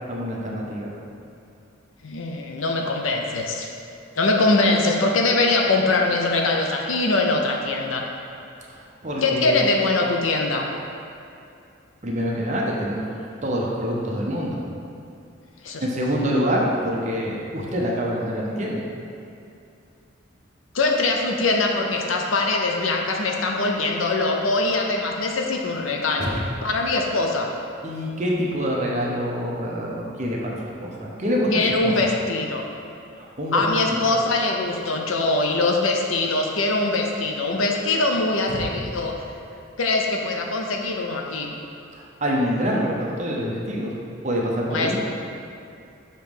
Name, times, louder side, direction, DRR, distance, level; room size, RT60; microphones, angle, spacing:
voice 1, 0.1-0.9 8.7-9.6 12.0-13.1 13.4-14.6 15.8-18.8 26.2-26.3 27.8-31.5 31.8-31.9 33.2-33.6 34.1-34.2 38.5-38.6 41.9-43.9 44.2-45.0, equal, 35° right, -3 dB, 0.8 m, -26 dB
voice 2, 2.0-3.7 4.2-8.1 9.2-10.7 15.6-15.8 20.7-27.5 31.5-32.6 33.5-39.2 39.8-41.5 44.7-45.0, left 2 dB, 75° left, 1 dB, 0.6 m, -22 dB
6.6 x 3.1 x 5.3 m, 2.6 s
head